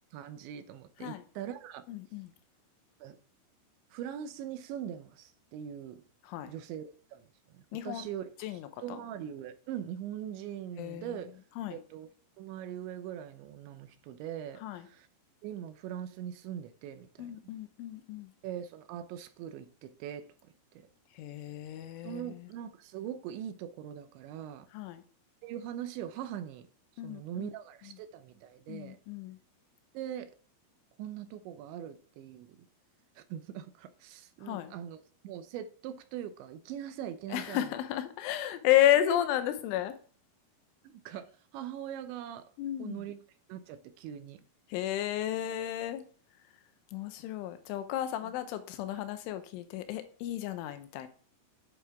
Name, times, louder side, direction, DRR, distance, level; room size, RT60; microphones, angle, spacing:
voice 1, 0.1-1.9 3.0-3.2 3.9-6.0 6.4-11.4 11.7-12.1 12.4-15.1 15.4-17.3 18.4-20.9 22.0-24.7 25.4-26.7 27.0-29.0 29.9-30.4 31.0-32.7 33.2-37.7 39.0-39.2 40.8-42.5 42.8-43.2 43.5-44.4, right 10 dB, 80° right, 3.0 m, -42 dB
voice 2, 1.9-2.3 6.2-6.5 7.7-8.1 8.4-9.0 10.8-11.2 11.6-11.8 14.6-14.9 17.2-18.3 21.2-22.5 24.7-25.0 27.0-27.5 27.9-28.0 28.7-29.4 34.4-34.7 37.3-40.0 42.6-43.1 44.7-46.0 46.9-51.1, left 12 dB, 90° left, 3.4 m, -32 dB
9.3 x 8.4 x 3.6 m
omnidirectional pair, 5.4 m